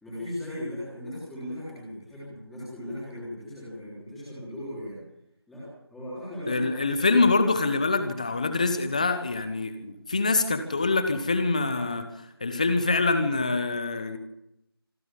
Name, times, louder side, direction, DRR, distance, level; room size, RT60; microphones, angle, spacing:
voice 1, 0.0-5.0 5.5-7.2, left 1 dB, ahead, -12 dB, 3.2 m, -37 dB
voice 2, 6.5-12.0 12.4-14.2, left 3 dB, 15° left, 10 dB, 1.1 m, -25 dB
26.0 x 13.5 x 7.4 m, 0.83 s
figure-of-eight pair, 175°, 13 cm